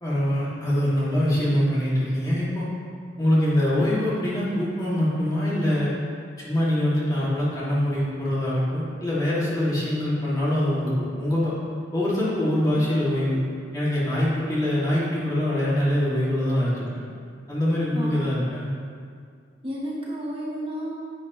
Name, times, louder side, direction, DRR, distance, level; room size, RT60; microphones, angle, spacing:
voice 1, 0.0-2.7 3.2-5.9 6.4-11.5 11.9-13.4 13.7-16.9 17.5-18.7, left 1 dB, 20° left, -9 dB, 2.4 m, -24 dB
voice 2, 17.9-18.3 19.6-20.9, equal, 30° right, -5 dB, 1.1 m, -32 dB
10.0 x 8.0 x 3.2 m, 2.2 s
head